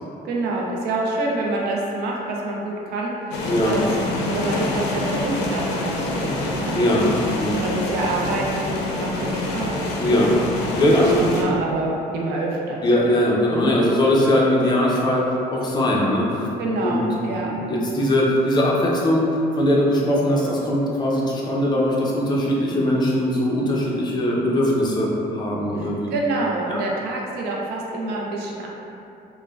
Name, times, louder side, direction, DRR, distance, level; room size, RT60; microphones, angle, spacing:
voice 1, 0.2-3.8 4.2-6.7 7.4-9.8 10.2-10.4 10.9-12.8 13.5-13.8 16.6-17.5 25.8-28.7, right 2 dB, 75° right, -2 dB, 0.4 m, -27 dB
sound 1, 3.3-11.4, left 2 dB, 85° left, 0.4 m, -26 dB
voice 2, 6.7-7.1 7.4-7.6 10.0-11.2 12.8-16.5 16.8-17.0 17.3-26.1 26.7-26.8, left 1 dB, 25° left, -4 dB, 0.5 m, -20 dB
3.1 x 2.1 x 2.3 m, 2.7 s
cardioid pair, 110°, 17 cm